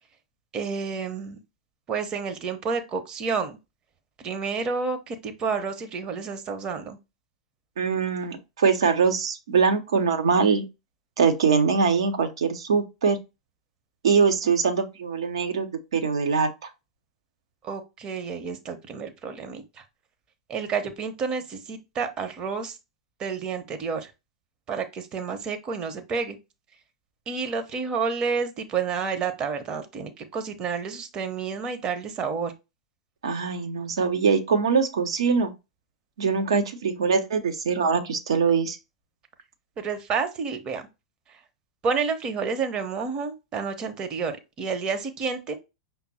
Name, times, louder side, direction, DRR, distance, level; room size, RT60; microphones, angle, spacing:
voice 1, 0.5-1.4 1.9-3.6 4.2-7.0 17.6-19.6 20.5-22.8 23.2-24.1 24.7-26.4 27.3-32.5 39.8-40.9 41.8-45.6, right 5 dB, 25° right, 0.8 m, -30 dB
voice 2, 7.8-10.6 11.2-13.2 14.0-15.7 15.9-16.5 33.2-35.5 36.2-38.8, right 5 dB, 65° right, 0.8 m, -23 dB
5.7 x 2.0 x 4.1 m
figure-of-eight pair, 95°, 3 cm